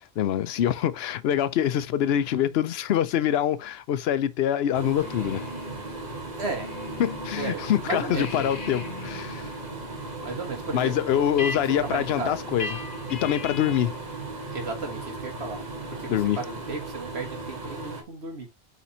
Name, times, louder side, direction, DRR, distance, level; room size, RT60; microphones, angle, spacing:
voice 1, 0.2-5.4 7.0-9.5 10.7-12.8 13.1-14.0 16.1-16.4, left 10 dB, 75° left, 0.8 m, -25 dB
sound 1, 4.7-18.0, right 3 dB, 45° right, 1.4 m, -37 dB
sound 2, 5.0-7.5 7.8-14.0, left 4 dB, 55° left, 1.1 m, -40 dB
voice 2, 6.3-6.7 7.4-8.5 10.2-11.2 11.8-12.4 14.5-15.6 16.0-18.5, right 3 dB, 85° right, 1.8 m, -34 dB
8.4 x 4.1 x 2.7 m
omnidirectional pair, 1.1 m